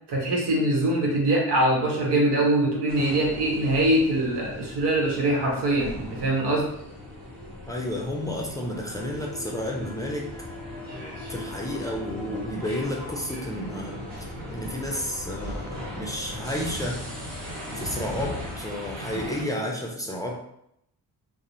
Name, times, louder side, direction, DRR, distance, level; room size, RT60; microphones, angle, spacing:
voice 1, 0.1-6.7, right 1 dB, 90° right, -1 dB, 0.9 m, -23 dB
sound 1, 2.9-19.4, left 1 dB, 60° right, 1.1 m, -38 dB
voice 2, 7.7-10.3 11.3-17.0 17.7-20.4, left 1 dB, 10° left, -2 dB, 0.4 m, -31 dB
2.5 x 2.0 x 3.0 m, 0.75 s
cardioid pair, 80°, 39 cm